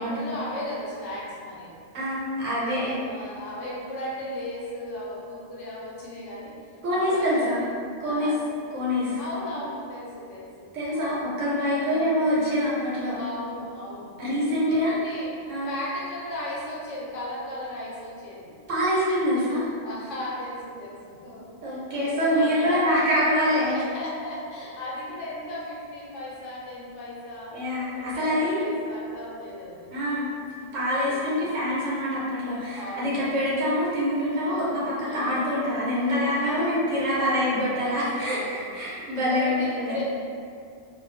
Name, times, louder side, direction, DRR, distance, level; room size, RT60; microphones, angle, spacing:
voice 1, 0.0-1.7 2.6-6.5 6.9-7.6 8.0-8.4 9.2-11.2 11.8-12.1 13.1-15.4 15.7-18.5 19.8-22.9 23.3-27.6 27.9-29.9 31.0-31.4 32.7-33.4 34.4-34.7 35.0-35.5 36.4-37.8 38.1-38.6 39.1-40.0, left 1 dB, 75° left, -6 dB, 1.0 m, -37 dB
voice 2, 1.9-3.0 6.8-7.6 8.0-8.3 8.7-9.2 10.7-13.2 14.2-14.9 15.5-15.7 18.7-19.7 21.6-23.7 27.5-28.8 29.9-30.2 30.7-40.0, equal, 90° right, -8 dB, 1.1 m, -25 dB
2.3 x 2.2 x 2.5 m, 2.3 s
omnidirectional pair, 1.3 m